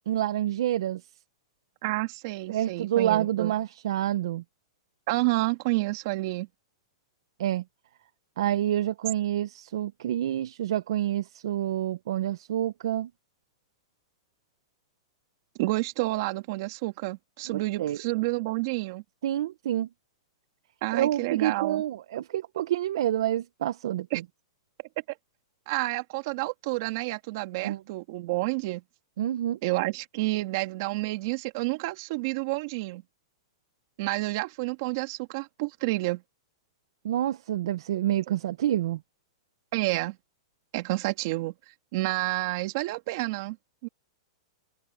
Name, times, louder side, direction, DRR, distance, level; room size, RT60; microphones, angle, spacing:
voice 1, 0.1-1.0 2.5-4.4 7.4-7.6 8.4-13.1 17.5-18.0 19.2-19.9 20.9-24.1 27.6-27.8 29.2-29.6 37.0-39.0, right 12 dB, 60° right, 0.7 m, -28 dB
voice 2, 1.8-3.5 5.1-6.5 15.6-19.0 20.8-21.8 24.1-24.2 25.7-28.8 29.6-33.0 34.0-36.2 39.7-40.2 40.7-41.5 41.9-43.6 43.8-43.9, right 21 dB, 40° right, 2.4 m, -29 dB
supercardioid pair, 170°, 3 cm